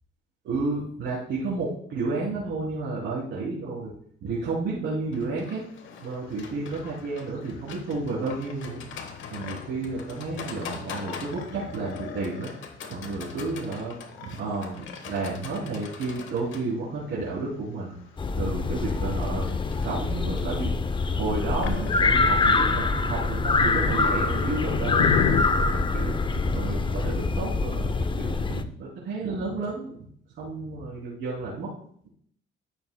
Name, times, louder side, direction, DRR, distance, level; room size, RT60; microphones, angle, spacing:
voice 1, 0.4-3.9 4.2-5.6 6.0-8.8 9.3-12.5 12.9-13.9 14.2-18.0 18.4-19.5 19.8-20.7 21.1-30.0 30.4-31.7, right 3 dB, 80° right, -8 dB, 3.3 m, -31 dB
Livestock farm animals working animals, 5.1-23.2, left 6 dB, 75° left, 1.2 m, -43 dB
sound 1, 5.6-25.4, left 10 dB, 90° left, 0.6 m, -38 dB
sound 2, 18.2-28.6, left 3 dB, 25° left, 0.6 m, -25 dB
13.0 x 6.8 x 2.3 m, 0.63 s
cardioid pair, 90°, 20 cm